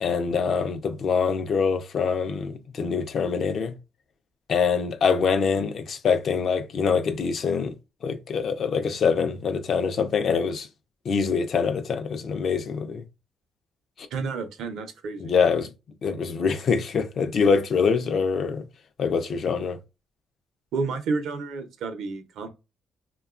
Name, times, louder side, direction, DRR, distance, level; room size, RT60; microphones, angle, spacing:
voice 1, 0.0-3.7 4.5-7.7 8.0-10.7 11.1-13.0 14.0-14.1 15.2-15.7 16.0-18.6 19.0-19.8, left 5 dB, 60° left, 0.5 m, -24 dB
voice 2, 14.1-15.3 20.7-22.5, right 4 dB, 80° right, 0.6 m, -30 dB
2.8 x 2.2 x 2.4 m
cardioid pair, 90°, 0 cm